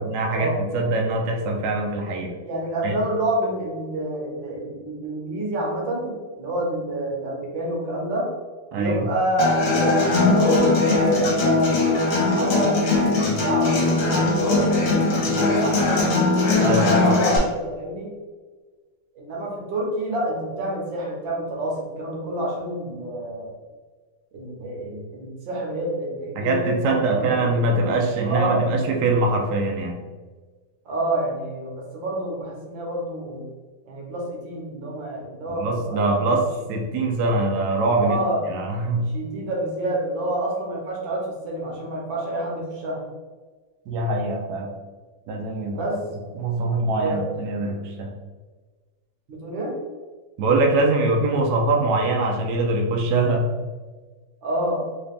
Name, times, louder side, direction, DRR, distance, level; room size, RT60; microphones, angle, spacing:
voice 1, 0.0-2.3 2.8-3.0 8.7-9.1 16.6-17.2 26.3-30.0 35.6-36.4 36.7-38.2 38.5-39.1 43.9-44.7 45.3-45.9 46.3-48.1 50.4-53.5, right 2 dB, 70° right, 1 dB, 1.0 m, -23 dB
voice 2, 2.4-8.3 8.7-12.8 13.3-14.5 14.9-16.1 16.5-18.1 19.2-23.6 24.3-27.5 28.3-28.7 30.9-33.4 33.9-36.1 37.9-38.5 39.1-43.0 45.8-46.0 47.0-47.2 49.3-49.7 54.4-54.9, right 1 dB, 90° right, -2 dB, 1.7 m, -28 dB
Human voice / Acoustic guitar, 9.4-17.4, left 3 dB, 65° left, 1.7 m, -20 dB
4.0 x 2.4 x 3.3 m, 1.4 s
omnidirectional pair, 2.0 m